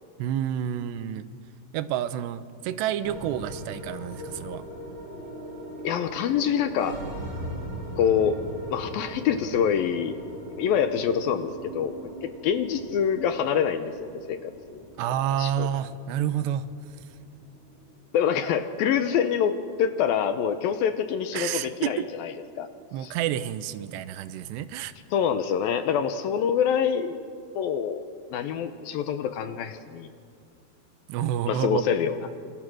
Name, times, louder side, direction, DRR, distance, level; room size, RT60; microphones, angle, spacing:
voice 1, 0.2-1.3 1.7-4.6 15.0-16.7 21.3-22.1 22.9-24.9 31.1-31.8, right 10 dB, 85° right, 13 dB, 3.0 m, -29 dB
sound 1, 3.0-21.4, right 1 dB, 30° right, 5.5 m, -41 dB
voice 2, 5.8-7.0 8.0-8.4 8.7-10.1 10.5-14.4 14.7-14.9 15.4-15.7 18.1-22.7 23.0-23.1 25.1-28.0 28.3-30.1 31.5-32.2, left 8 dB, 75° left, 9 dB, 2.4 m, -26 dB
28.5 x 27.0 x 6.3 m, 2.3 s
omnidirectional pair, 4.8 m